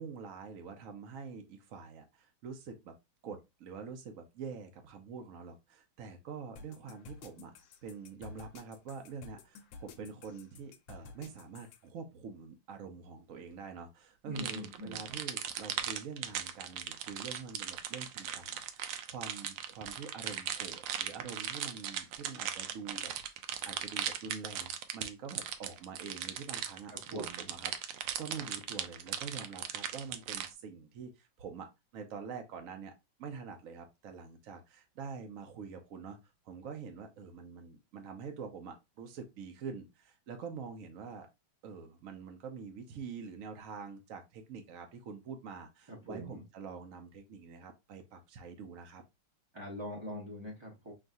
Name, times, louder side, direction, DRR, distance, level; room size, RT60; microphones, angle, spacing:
voice 1, 0.0-2.9 3.2-7.5 7.8-32.9 33.2-36.2 36.4-41.3 41.6-49.0, right 5 dB, 65° right, 5 dB, 0.8 m, -46 dB
sound 1, 6.6-11.8, left 5 dB, 80° left, 1.3 m, -51 dB
voice 2, 14.3-15.1 26.9-27.5 45.9-46.4 49.5-50.9, equal, 30° right, -3 dB, 0.5 m, -43 dB
sound 2, 14.4-30.5, right 9 dB, 80° right, 1.3 m, -38 dB
6.2 x 2.4 x 2.6 m, 0.22 s
omnidirectional pair, 2.1 m